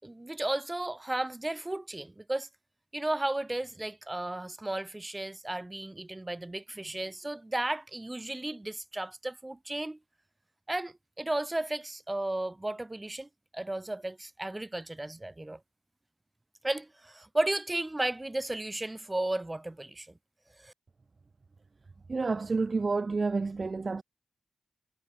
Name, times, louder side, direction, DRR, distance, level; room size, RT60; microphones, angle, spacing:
voice 1, 0.0-2.5 2.9-10.0 10.7-15.6 16.6-20.1 20.6-20.7, right 1 dB, 15° right, 6.6 m, -34 dB
voice 2, 22.1-24.0, right 4 dB, 40° right, 1.4 m, -29 dB
wide cardioid pair, 100°, 0 cm